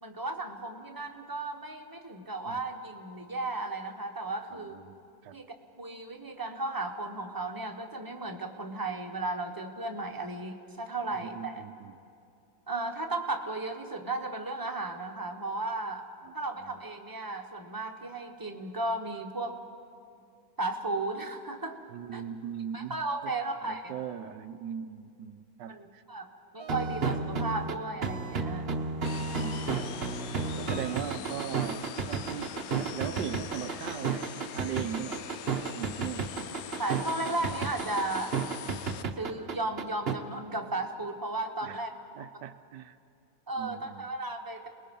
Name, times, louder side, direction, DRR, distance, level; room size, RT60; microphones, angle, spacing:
voice 1, 0.0-4.8 5.3-5.5 5.8-11.6 12.7-16.0 16.3-19.6 20.6-21.8 22.1-22.2 22.7-23.9 25.7-26.3 26.5-28.7 36.8-38.3 39.2-41.9 43.5-44.7, right 2 dB, 15° right, 3 dB, 1.2 m, -35 dB
voice 2, 4.5-5.0 5.2-5.4 11.2-12.0 16.2-16.3 16.6-16.7 21.9-23.3 23.6-26.0 29.1-34.2 34.5-35.3 35.7-36.3 41.6-41.8 42.2-43.0 43.6-44.1, right 9 dB, 90° right, 11 dB, 1.4 m, -39 dB
sound 1, 26.6-40.1, right 5 dB, 40° right, 1.1 m, -32 dB
sound 2, 29.0-39.0, left 8 dB, 65° left, 1.1 m, -42 dB
30.0 x 20.5 x 5.4 m, 2.4 s
omnidirectional pair, 1.8 m